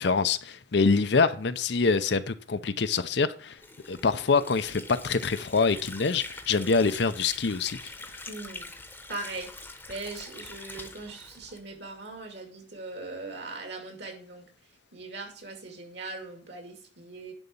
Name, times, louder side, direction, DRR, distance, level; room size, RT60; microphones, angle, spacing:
voice 1, 0.0-3.6 3.9-7.9, left 4 dB, 60° left, 0.6 m, -25 dB
Water / Sink (filling or washing), 3.6-12.1, left 2 dB, 10° left, 0.9 m, -44 dB
voice 2, 8.3-8.7 9.1-14.5 14.9-17.3, right 3 dB, 60° right, 2.5 m, -40 dB
10.5 x 4.1 x 7.0 m
head